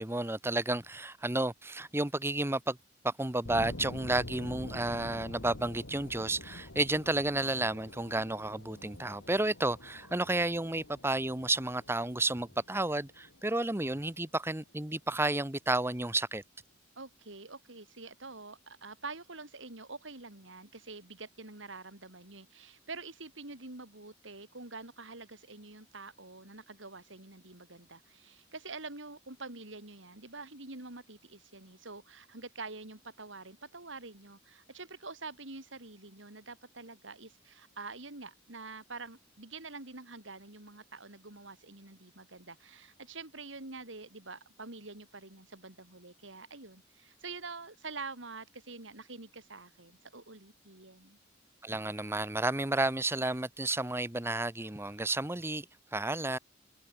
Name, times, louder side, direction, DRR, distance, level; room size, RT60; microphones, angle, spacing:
voice 1, 0.0-2.8 3.0-16.4 51.6-55.6 55.9-56.4, right 2 dB, 15° right, 1.1 m, -31 dB
sound 1, 3.4-14.2, left 1 dB, 85° left, 3.2 m, -47 dB
voice 2, 17.0-51.2, right 3 dB, 75° right, 3.9 m, -46 dB
head